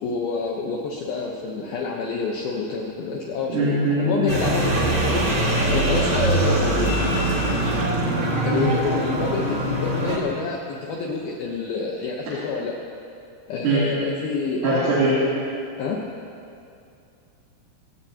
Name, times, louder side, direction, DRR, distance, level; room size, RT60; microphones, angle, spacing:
voice 1, 0.0-5.3 5.7-6.9 8.4-12.8 13.5-15.2 15.8-16.0, left 4 dB, 80° left, -1 dB, 2.1 m, -28 dB
voice 2, 3.5-4.3 8.5-8.7 13.6-13.9 14.6-15.1, right 2 dB, 70° right, -11 dB, 5.5 m, -21 dB
sound 1, 4.3-10.2, right 1 dB, 45° right, 1.4 m, -22 dB
25.5 x 16.5 x 2.9 m, 2.5 s
omnidirectional pair, 5.9 m